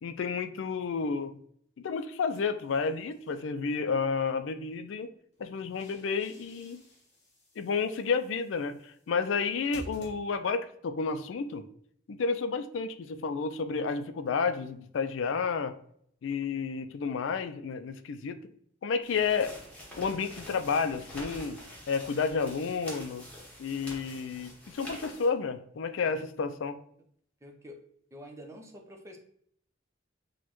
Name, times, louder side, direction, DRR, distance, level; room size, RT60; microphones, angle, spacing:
voice 1, 0.0-1.4 1.8-5.1 5.4-6.8 7.6-11.6 12.1-15.7 16.2-18.4 18.8-19.5 20.0-21.6 21.9-23.3 23.6-26.8, left 5 dB, 80° left, 9 dB, 0.4 m, -31 dB
sound 1, 2.3-3.4 5.3-10.7, equal, 40° left, 1.5 m, -52 dB
sound 2, 19.0-25.3, equal, 5° left, 1.1 m, -46 dB
voice 2, 27.4-27.8 28.1-29.2, equal, 15° right, 2 dB, 0.6 m, -47 dB
6.2 x 2.2 x 3.0 m, 0.66 s
head